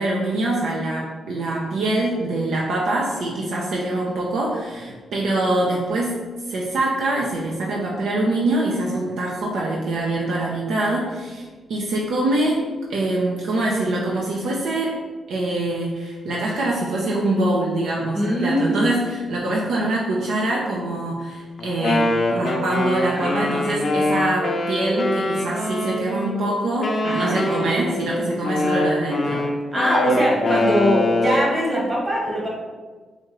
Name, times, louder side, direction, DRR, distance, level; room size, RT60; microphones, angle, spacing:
voice 1, 0.0-6.2 6.5-12.6 12.9-15.0 15.3-29.5, right 2 dB, 80° right, -3 dB, 0.5 m, -24 dB
voice 2, 18.1-18.8 23.1-23.5 27.0-27.4 29.7-32.5, equal, 35° right, -4 dB, 1.4 m, -22 dB
Wind instrument woodwind instrument, 21.6-26.3 26.8-31.5, left 2 dB, 50° left, 0.5 m, -23 dB
4.3 x 2.4 x 3.0 m, 1.4 s
cardioid pair, 70°, 0 cm